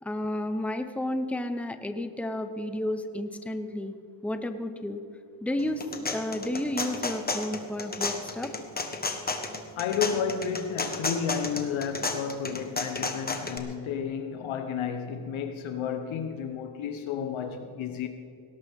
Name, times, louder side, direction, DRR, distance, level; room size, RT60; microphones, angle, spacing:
voice 1, 0.0-3.9 4.2-5.0 5.4-5.8 6.1-8.5, left 1 dB, 5° left, 0.9 m, -31 dB
sound 1, 5.6-13.6, left 3 dB, 20° left, 1.4 m, -32 dB
voice 2, 9.8-18.1, left 7 dB, 75° left, 1.1 m, -32 dB
18.5 x 17.5 x 3.6 m
cardioid pair, 110°, 47 cm